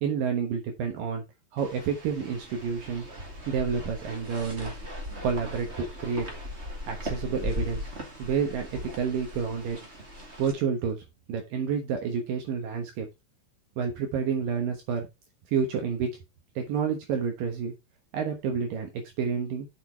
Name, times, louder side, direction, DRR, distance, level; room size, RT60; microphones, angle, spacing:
voice 1, 0.0-1.2 1.5-3.0 3.5-4.8 5.2-6.3 6.9-7.9 8.2-9.8 10.4-13.1 13.8-15.1 15.5-16.2 16.6-17.7 18.1-18.9 19.2-19.7, right 6 dB, 70° right, 4 dB, 2.8 m, -29 dB
sound 1, 1.6-10.5, left 1 dB, 25° right, 1.8 m, -38 dB
6.8 x 6.4 x 4.5 m, 0.23 s
omnidirectional pair, 4.4 m